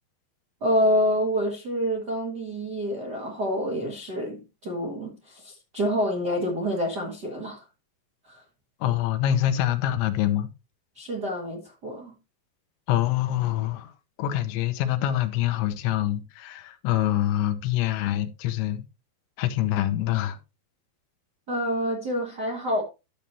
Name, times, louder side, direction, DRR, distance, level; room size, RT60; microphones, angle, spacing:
voice 1, 0.6-7.6 8.2-8.4 10.9-12.1 21.5-22.8, equal, 85° right, 0.9 m, -27 dB
voice 2, 8.8-10.5 12.9-13.9 14.2-18.8 19.4-20.4, left 12 dB, 85° left, 3.2 m, -25 dB
11.5 x 6.9 x 3.0 m
omnidirectional pair, 5.1 m